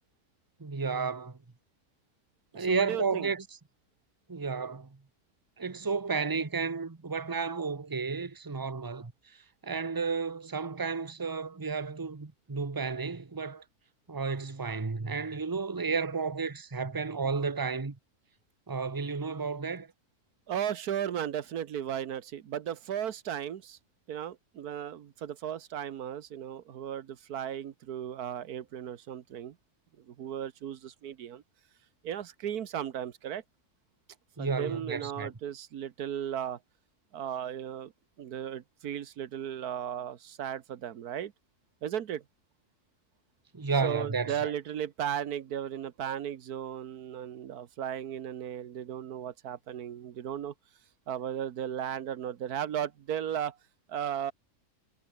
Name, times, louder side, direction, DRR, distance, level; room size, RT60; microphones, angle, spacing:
voice 1, 0.6-1.4 2.5-3.4 4.3-5.0 5.6-13.6 14.1-18.0 18.7-19.9 34.4-35.3 43.5-44.5, right 5 dB, 15° right, 0.9 m, -32 dB
voice 2, 2.7-3.3 20.5-23.8 24.1-29.6 30.0-31.4 32.0-33.4 34.4-36.6 37.1-37.9 38.2-41.3 41.8-42.2 43.8-50.5 51.1-53.6 53.9-54.3, right 9 dB, 85° right, 1.5 m, -35 dB
omnidirectional pair, 1.6 m